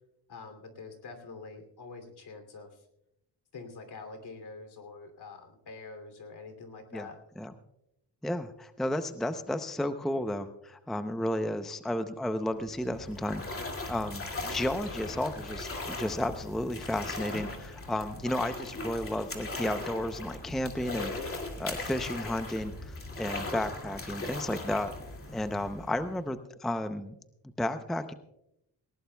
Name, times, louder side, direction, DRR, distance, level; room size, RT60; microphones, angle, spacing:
voice 1, 0.3-2.9 3.5-7.2, left 4 dB, 60° left, 6 dB, 2.9 m, -46 dB
voice 2, 8.2-13.4 13.9-24.9 25.3-27.1 27.6-28.1, left 1 dB, ahead, 9 dB, 0.6 m, -33 dB
sound 1, 12.5-26.3, left 2 dB, 30° left, 2.3 m, -39 dB
19.0 x 18.5 x 2.3 m, 0.82 s
cardioid pair, 115°, 43 cm